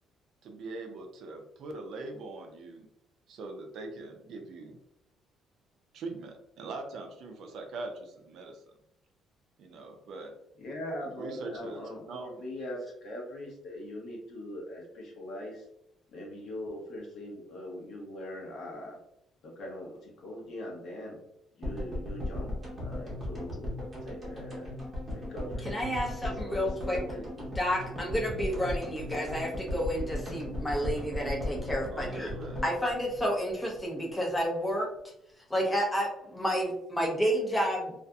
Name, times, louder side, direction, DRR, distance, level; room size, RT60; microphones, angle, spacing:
voice 1, 0.4-2.9 3.3-4.8 5.9-8.7 9.6-10.3 11.1-12.3 31.9-32.6, right 3 dB, 55° right, 4 dB, 0.4 m, -42 dB
voice 2, 10.6-15.7 16.1-19.0 19.4-21.2 21.5-22.5 22.8-23.7 24.0-24.8 25.1-25.7 26.4-27.5 29.1-29.3, left 1 dB, 55° left, -2 dB, 0.8 m, -41 dB
sound 1, 21.6-33.8 34.1-34.2 34.4-34.5, left 1 dB, 20° right, 0.8 m, -37 dB
voice 3, 25.6-27.0 27.6-32.3 32.6-34.9 35.5-37.9, equal, 5° left, -2 dB, 0.5 m, -30 dB
2.6 x 2.4 x 2.3 m, 0.81 s
cardioid pair, 170°, 0 cm